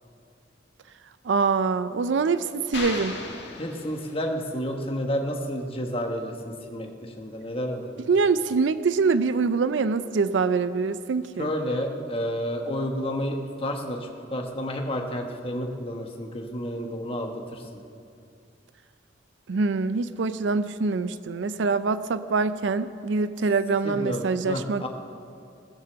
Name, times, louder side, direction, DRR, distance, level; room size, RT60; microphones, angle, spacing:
voice 1, 1.2-3.2 8.1-11.5 19.5-24.9, right 4 dB, 80° right, 13 dB, 0.4 m, -24 dB
sound 1, 2.7-4.5, left 3 dB, 65° left, 2.0 m, -36 dB
voice 2, 3.6-8.0 11.4-17.8 23.8-24.9, equal, 30° left, 3 dB, 1.2 m, -30 dB
20.0 x 6.7 x 6.9 m, 2.5 s
head